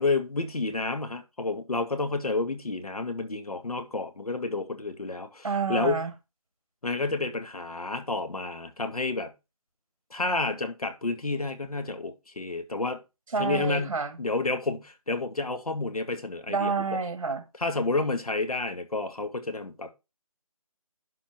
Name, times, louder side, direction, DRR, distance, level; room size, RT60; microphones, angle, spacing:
voice 1, 0.0-6.1 6.8-9.3 10.1-13.0 13.4-17.0 17.6-19.9, left 3 dB, 80° left, 2.2 m, -30 dB
voice 2, 5.4-6.1 13.3-14.2 16.5-17.4, right 4 dB, 60° right, 1.8 m, -28 dB
11.5 x 4.5 x 4.6 m
figure-of-eight pair, 170°, 19 cm